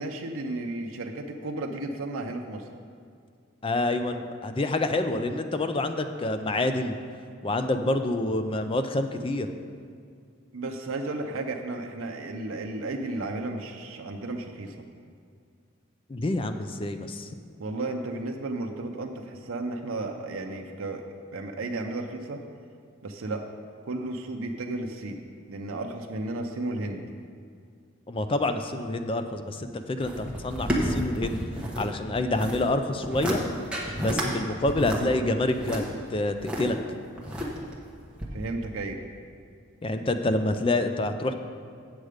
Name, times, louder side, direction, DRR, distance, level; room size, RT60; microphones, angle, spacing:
voice 1, 0.0-2.6 10.5-14.8 17.6-21.0 21.3-22.4 23.0-23.4 23.8-25.2 25.5-27.0 38.3-39.0, right 2 dB, 75° right, 2 dB, 0.6 m, -33 dB
voice 2, 3.6-7.0 7.4-9.5 16.1-17.3 28.1-31.4 31.8-33.4 34.0-35.8 36.1-36.8 39.8-41.3, left 2 dB, 25° left, 8 dB, 0.4 m, -27 dB
sound 1, 30.0-31.9 32.1-32.6 33.0-33.4 33.7-34.3 34.6-36.6 37.2-37.8 38.2-38.3, equal, 5° right, 1.0 m, -30 dB
8.0 x 7.5 x 5.0 m, 2.3 s
head